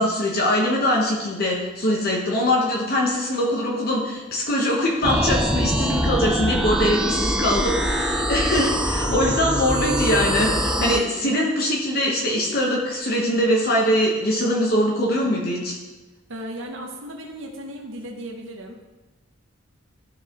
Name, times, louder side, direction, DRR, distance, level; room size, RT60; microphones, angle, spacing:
voice 1, 0.0-15.8, left 1 dB, 50° left, -2 dB, 1.0 m, -22 dB
sound 1, 5.0-11.0, equal, 5° right, 0.4 m, -23 dB
voice 2, 16.3-18.9, right 1 dB, 75° right, 1 dB, 0.9 m, -35 dB
12.0 x 4.7 x 3.0 m, 1.2 s
head